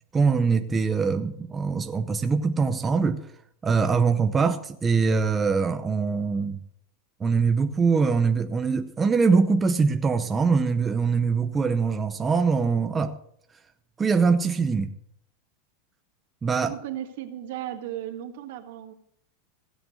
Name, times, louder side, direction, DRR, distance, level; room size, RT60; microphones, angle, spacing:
voice 1, 0.1-3.2 3.6-6.6 7.2-13.1 14.0-14.9 16.4-16.7, right 5 dB, 15° right, 7 dB, 0.7 m, -23 dB
voice 2, 16.6-18.9, right 12 dB, 65° right, 6 dB, 1.8 m, -35 dB
16.5 x 8.7 x 6.4 m, 0.70 s
supercardioid pair, 155°, 0 cm